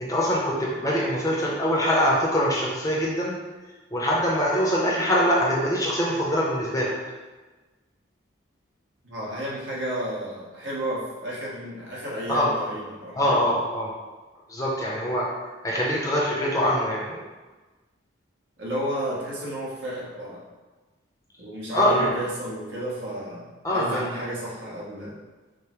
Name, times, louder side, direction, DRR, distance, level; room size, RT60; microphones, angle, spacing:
voice 1, 0.0-3.3 3.9-6.9 12.3-12.5 13.1-13.9 14.5-15.3 15.6-17.2 21.7-22.1 23.6-24.0, equal, 15° left, -5 dB, 0.7 m, -23 dB
voice 2, 9.0-13.3 18.6-20.4 21.4-25.1, right 1 dB, 70° right, -6 dB, 1.3 m, -32 dB
5.1 x 2.1 x 4.4 m, 1.2 s
head